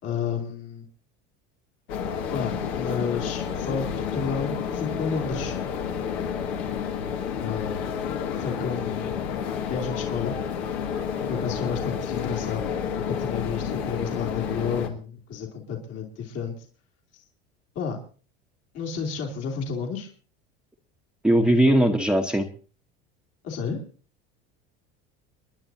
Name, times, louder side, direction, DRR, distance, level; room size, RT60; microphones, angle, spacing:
voice 1, 0.0-0.9 2.3-5.6 7.4-7.9 8.4-9.3 9.7-10.3 11.3-12.6 12.9-16.7 17.1-17.2 17.7-18.0 18.7-20.1 23.4-23.8, left 6 dB, 55° left, 0 dB, 3.2 m, -31 dB
sound 1, 1.9-14.9, left 7 dB, 80° left, 2.1 m, -30 dB
voice 2, 21.2-22.5, right 1 dB, 5° right, 4 dB, 1.2 m, -19 dB
29.5 x 10.5 x 2.8 m, 0.39 s
supercardioid pair, 95°, 30 cm